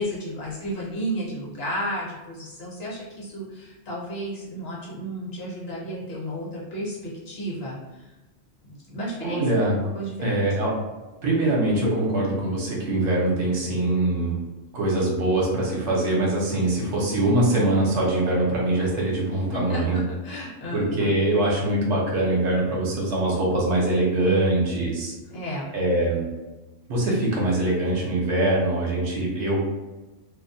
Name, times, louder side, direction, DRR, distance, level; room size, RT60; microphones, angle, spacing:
voice 1, 0.0-7.8 8.6-10.5 19.2-21.1 25.3-25.7, equal, 60° left, -5 dB, 0.9 m, -33 dB
voice 2, 9.2-9.8 10.2-10.7 11.2-14.4 14.7-20.0 20.7-25.1 25.7-26.3 26.9-29.6, right 1 dB, 65° right, -3 dB, 0.9 m, -23 dB
2.3 x 2.0 x 2.6 m, 1.1 s
omnidirectional pair, 1.3 m